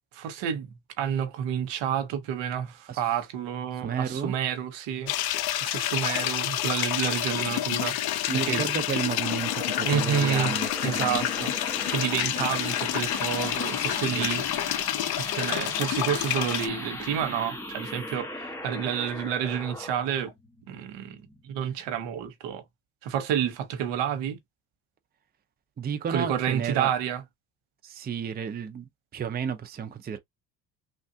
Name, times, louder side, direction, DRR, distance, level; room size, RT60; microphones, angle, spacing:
voice 1, 0.1-5.1 5.6-8.7 9.8-10.5 10.8-11.5 11.9-14.5 15.4-20.3 20.7-22.6 23.0-24.4 26.1-27.2, right 9 dB, 80° right, 0.9 m, -29 dB
voice 2, 3.8-4.3 8.3-11.3 14.1-14.4 25.8-26.9 27.8-30.2, right 7 dB, 20° right, 0.5 m, -32 dB
sound 1, 5.1-16.7, left 13 dB, 60° left, 0.5 m, -29 dB
sound 2, 8.7-21.9, left 1 dB, 5° left, 1.1 m, -38 dB
3.2 x 2.4 x 2.7 m
cardioid pair, 110°, 43 cm